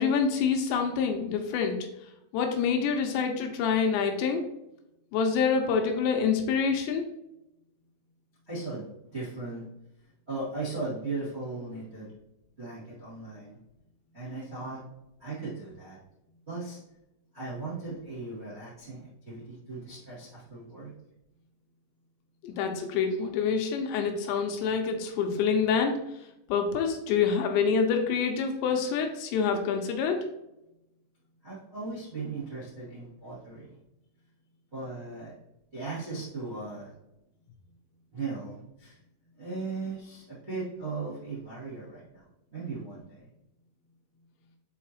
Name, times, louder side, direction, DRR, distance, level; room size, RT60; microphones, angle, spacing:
voice 1, 0.0-1.8 2.3-4.4 5.1-7.0 22.4-25.9 26.5-30.3, left 6 dB, 80° left, 3 dB, 2.8 m, -26 dB
voice 2, 8.5-9.7 10.3-12.1 12.6-13.6 14.1-14.8 15.2-16.0 16.5-16.8 17.3-20.9 31.4-33.8 34.7-35.3 35.7-36.9 38.1-39.0 39.4-43.3, right 3 dB, 85° right, -8 dB, 0.5 m, -37 dB
7.4 x 4.7 x 2.9 m, 0.88 s
omnidirectional pair, 5.4 m